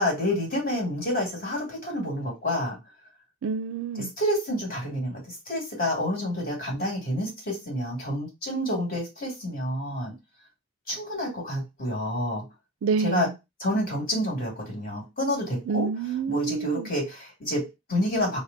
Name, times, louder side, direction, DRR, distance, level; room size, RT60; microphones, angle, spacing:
voice 1, 0.0-2.8 4.2-10.1 10.9-12.4 13.0-13.3 13.6-15.9 16.3-18.4, left 1 dB, 50° left, 2.1 m, -28 dB
voice 2, 3.4-4.1 12.8-13.4 15.7-16.9, right 5 dB, 85° right, 0.4 m, -28 dB
3.4 x 2.1 x 3.8 m
head